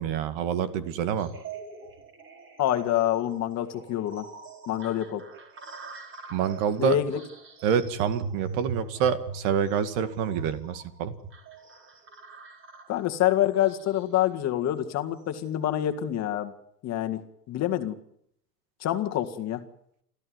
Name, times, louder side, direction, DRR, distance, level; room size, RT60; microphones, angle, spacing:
voice 1, 0.0-1.3 6.3-7.0 7.6-11.1, right 8 dB, 50° right, 12 dB, 2.2 m, -27 dB
sound 1, 1.2-15.4, right 5 dB, 25° right, 4.6 m, -48 dB
voice 2, 2.6-4.3 4.7-5.2 6.8-7.2 12.9-16.5 16.8-17.2 17.5-18.0 18.8-19.6, left 12 dB, 30° left, 6 dB, 2.0 m, -26 dB
29.5 x 14.0 x 9.5 m, 0.73 s
hypercardioid pair, 125°, 49 cm